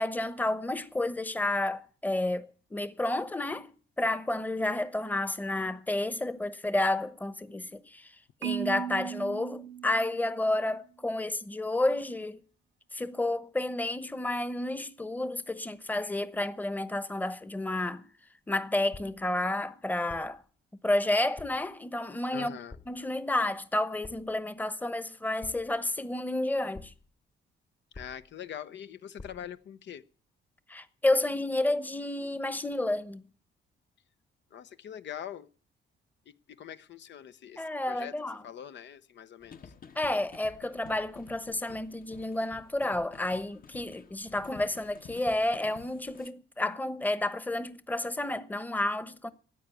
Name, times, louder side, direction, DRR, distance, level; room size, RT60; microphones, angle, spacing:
voice 1, 0.0-3.7 4.0-8.1 8.4-12.4 12.9-18.1 18.5-20.4 20.8-22.6 22.9-26.9 30.7-33.2 37.6-38.4 39.9-49.3, left 1 dB, 10° left, 1.0 m, -31 dB
Marimba xylophone, 8.4-10.6, right 10 dB, 75° right, 0.9 m, -37 dB
sound 1, 18.9-19.4 20.1-20.5 21.4-21.8 22.7-23.1 24.0-24.5 25.4-26.0 26.7-27.2 27.9-28.5 29.2-29.6, left 3 dB, 25° left, 1.2 m, -49 dB
voice 2, 22.3-22.8 27.9-30.0 34.5-35.5 36.5-38.2 38.4-39.7, left 9 dB, 65° left, 0.9 m, -43 dB
sound 2, 39.4-46.3, left 6 dB, 45° left, 1.3 m, -52 dB
14.0 x 9.0 x 8.5 m
cardioid pair, 90°, 20 cm